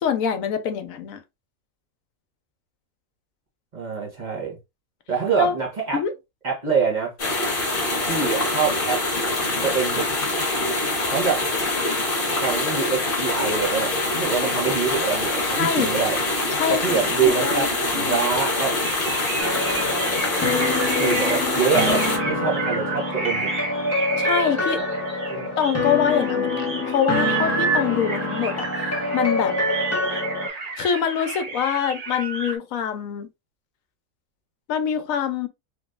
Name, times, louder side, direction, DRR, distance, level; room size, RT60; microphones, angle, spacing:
voice 1, 0.0-1.2 5.4-5.5 5.9-6.1 15.6-15.9 16.5-17.7 17.9-18.2 24.2-24.8 25.6-29.6 30.8-33.3 34.7-35.5, left 8 dB, 70° left, 1.0 m, -25 dB
voice 2, 3.7-4.6 5.1-6.0 6.4-7.1 8.1-9.0 9.4-10.1 11.1-11.5 12.4-16.2 16.7-18.7 21.0-23.5 25.3-25.5, right 5 dB, 30° right, 1.3 m, -25 dB
sound 1, 7.2-22.2, left 2 dB, 40° left, 1.1 m, -24 dB
sound 2, 18.8-32.6, right 4 dB, 70° right, 0.3 m, -31 dB
sound 3, 19.4-30.5, left 2 dB, 25° left, 0.3 m, -26 dB
3.3 x 3.0 x 2.3 m
omnidirectional pair, 1.5 m